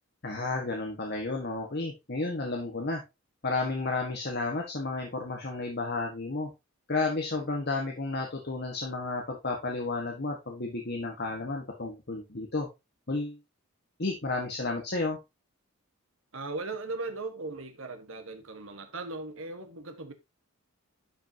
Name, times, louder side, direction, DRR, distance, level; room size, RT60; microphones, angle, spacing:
voice 1, 0.2-3.0 3.4-6.5 6.9-12.7 13.1-13.4 14.0-15.2, left 3 dB, 50° left, 1.5 m, -32 dB
voice 2, 16.3-20.1, right 3 dB, 65° right, 1.4 m, -38 dB
11.5 x 5.4 x 2.8 m
head